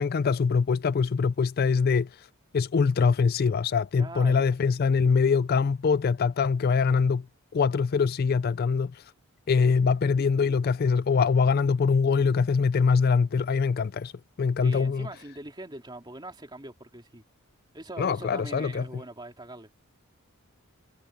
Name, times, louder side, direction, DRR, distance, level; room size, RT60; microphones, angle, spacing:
voice 1, 0.0-2.1 2.5-7.2 7.5-9.0 9.5-14.1 14.4-15.1 18.0-18.9, left 5 dB, 45° left, 0.3 m, -23 dB
voice 2, 4.0-4.4 14.6-17.2 17.7-19.7, right 2 dB, 20° right, 2.8 m, -42 dB
head